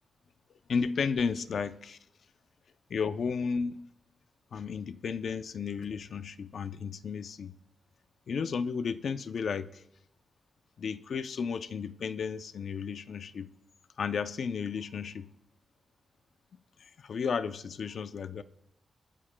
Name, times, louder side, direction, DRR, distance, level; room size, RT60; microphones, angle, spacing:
voice 1, 0.7-2.0 2.9-3.8 4.5-7.5 8.3-9.8 10.8-13.5 14.0-15.3 16.8-18.4, left 5 dB, 55° left, 0.5 m, -33 dB
21.0 x 12.5 x 2.2 m
wide cardioid pair, 145°, 0 cm